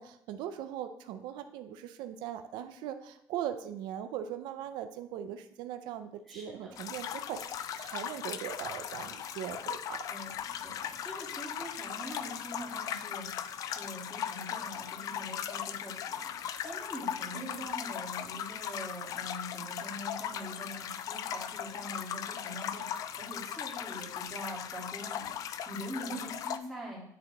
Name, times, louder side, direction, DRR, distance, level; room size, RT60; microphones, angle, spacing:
voice 1, 0.0-10.0 17.4-17.7 26.0-26.3, right 10 dB, 85° right, 9 dB, 0.4 m, -40 dB
voice 2, 6.3-6.7 10.1-10.3 10.6-27.0, equal, ahead, -5 dB, 2.2 m, -44 dB
sound 1, 6.7-26.6, left 9 dB, 50° left, 0.3 m, -38 dB
9.4 x 3.9 x 2.9 m, 0.73 s
cardioid pair, 145°, 8 cm